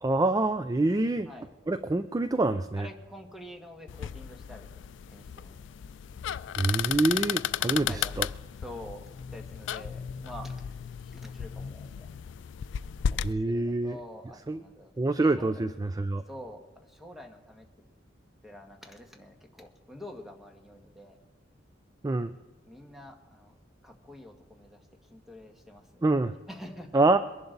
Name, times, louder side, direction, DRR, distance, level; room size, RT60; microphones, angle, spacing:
voice 1, 0.0-1.3 1.7-2.9 6.6-8.3 13.2-14.0 14.5-14.6 15.0-16.2 22.0-22.3 26.0-26.3 26.9-27.2, right 2 dB, 20° right, 11 dB, 0.4 m, -26 dB
voice 2, 2.7-5.6 7.8-8.1 8.6-9.0 9.3-10.8 11.0-12.1 13.1-15.6 16.3-17.7 18.4-21.2 22.7-23.6 23.8-26.1 26.5-27.2, left 1 dB, ahead, 2 dB, 1.7 m, -47 dB
sound 1, 3.9-13.3, left 9 dB, 70° left, 0.3 m, -34 dB
22.5 x 11.0 x 4.0 m, 1.2 s
head